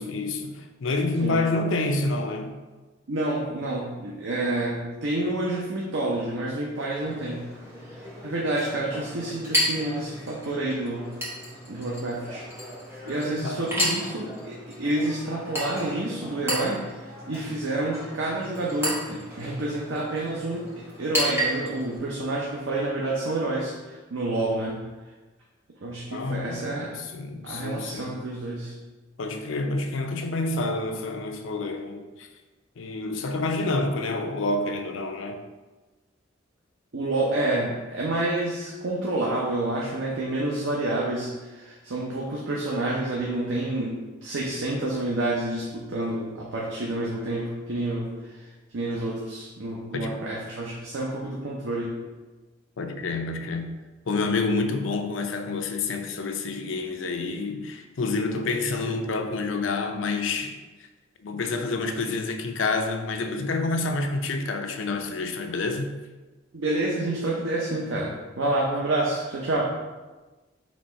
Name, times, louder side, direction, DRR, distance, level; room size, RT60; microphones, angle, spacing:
voice 1, 0.0-2.6 13.4-13.6 26.1-28.1 29.2-32.3 32.8-35.4 49.9-50.2 52.8-53.7 54.1-60.6 61.2-65.9, left 3 dB, 85° left, 0.5 m, -28 dB
voice 2, 3.1-7.5 8.2-11.1 11.7-12.5 13.0-24.8 25.8-26.9 27.4-28.7 36.9-43.9 44.2-48.5 48.7-52.0 66.5-69.6, right 2 dB, 90° right, 0.7 m, -28 dB
Chink clink, 7.0-22.0, equal, 15° right, 1.2 m, -33 dB
4.2 x 3.0 x 4.3 m
head